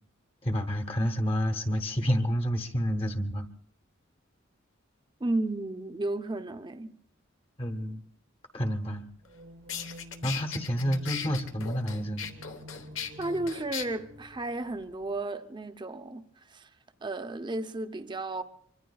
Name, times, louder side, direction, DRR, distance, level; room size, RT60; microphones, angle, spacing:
voice 1, 0.4-3.4 7.6-8.0 8.5-9.0 10.2-12.3, equal, 30° left, 0.9 m, -29 dB
voice 2, 5.2-6.9 13.2-16.7 17.0-18.4, right 2 dB, 25° right, 0.7 m, -33 dB
sound 1, 9.2-15.2, equal, 60° right, 1.2 m, -49 dB
sound 2, 9.3-9.4 9.7-13.9, left 8 dB, 75° left, 1.1 m, -38 dB
24.5 x 24.0 x 2.3 m
head